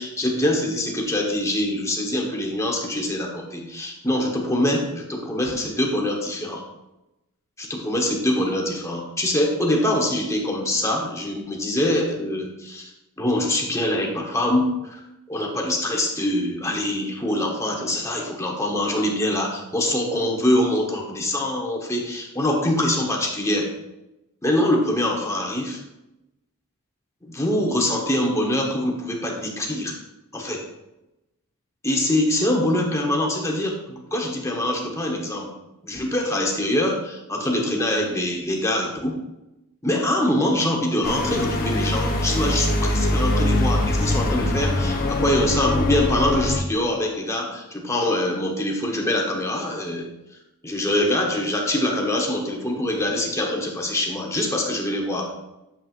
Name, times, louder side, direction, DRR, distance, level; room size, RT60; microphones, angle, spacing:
voice 1, 0.0-6.6 7.6-12.9 13.2-15.0 15.3-23.7 24.4-25.8 27.2-30.0 30.3-30.6 31.8-35.5 35.8-39.2 39.8-50.1 50.6-55.4, left 1 dB, 15° left, 0 dB, 1.1 m, -24 dB
sound 1, 41.0-46.6, left 1 dB, 40° left, 1.0 m, -22 dB
8.6 x 7.4 x 2.5 m, 0.94 s
head